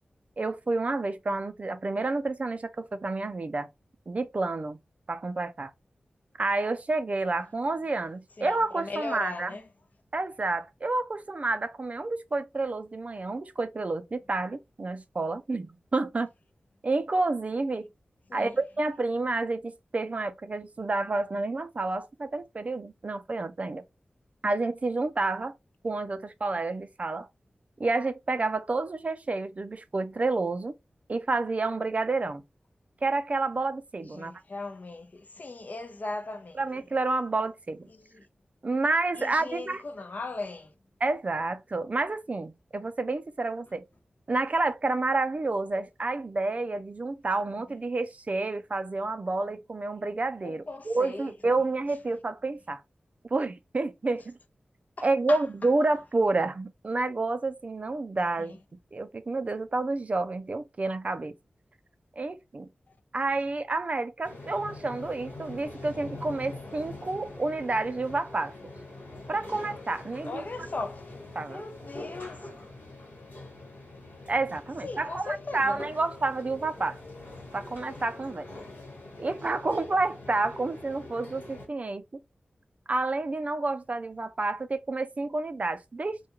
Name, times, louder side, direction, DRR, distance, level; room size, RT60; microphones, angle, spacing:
voice 1, 0.4-3.7 4.1-4.8 5.1-5.7 6.4-9.5 10.1-16.3 16.8-17.9 18.3-23.8 24.4-25.5 25.8-27.3 27.8-30.8 31.1-32.4 33.0-34.3 36.6-37.8 38.6-39.8 41.0-43.8 44.3-52.8 53.3-54.4 55.0-58.6 58.9-61.3 62.2-62.7 63.1-68.5 69.3-70.5 71.4-71.6 74.3-77.0 77.5-78.5 79.2-82.2 82.9-86.2, right 3 dB, 45° right, 0.4 m, -29 dB
voice 2, 8.4-9.6 18.3-18.6 34.1-36.6 37.9-38.2 39.2-40.7 50.4-51.5 55.0-55.4 58.4-58.6 70.2-71.2 71.5-72.5 74.8-75.8, left 3 dB, 55° left, 0.5 m, -38 dB
sound 1, 64.2-81.7, left 2 dB, 75° left, 1.3 m, -44 dB
2.3 x 2.2 x 2.9 m
wide cardioid pair, 60°, 3 cm